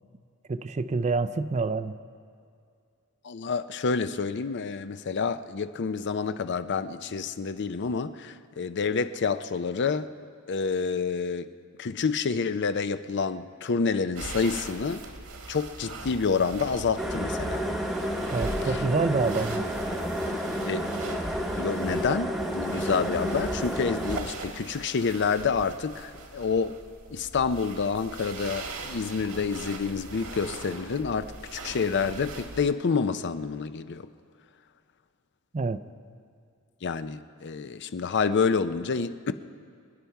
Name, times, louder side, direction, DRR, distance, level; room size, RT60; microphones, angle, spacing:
voice 1, 0.5-2.0 18.3-19.6 35.5-35.8, right 4 dB, 30° right, 0.4 m, -27 dB
voice 2, 3.2-10.1 10.5-11.5 11.8-15.0 15.5-17.6 18.6-18.8 20.6-21.0 21.5-26.7 27.1-34.1 36.8-39.3, left 5 dB, 50° left, 0.5 m, -28 dB
sound 1, 14.1-32.7, right 3 dB, 75° right, 1.5 m, -41 dB
sound 2, 17.0-24.2, equal, ahead, 1.0 m, -30 dB
25.5 x 10.0 x 4.6 m
head